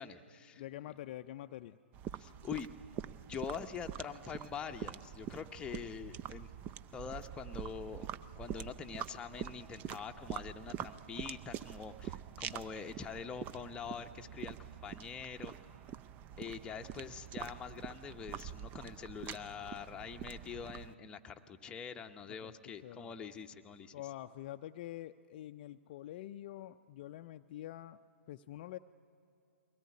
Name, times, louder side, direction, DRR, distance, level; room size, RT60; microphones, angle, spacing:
voice 1, 0.0-0.6 2.2-2.7 3.3-6.5 6.9-8.1 8.4-15.6 16.4-23.9, left 6 dB, 15° left, 5 dB, 0.8 m, -44 dB
voice 2, 0.6-1.8 22.3-23.1 23.9-28.0 28.3-28.8, left 13 dB, 45° left, 9 dB, 0.5 m, -46 dB
sound 1, 1.9-20.9, right 10 dB, 25° right, 0.4 m, -45 dB
22.0 x 17.5 x 9.4 m, 2.6 s
hypercardioid pair, 130°, 7 cm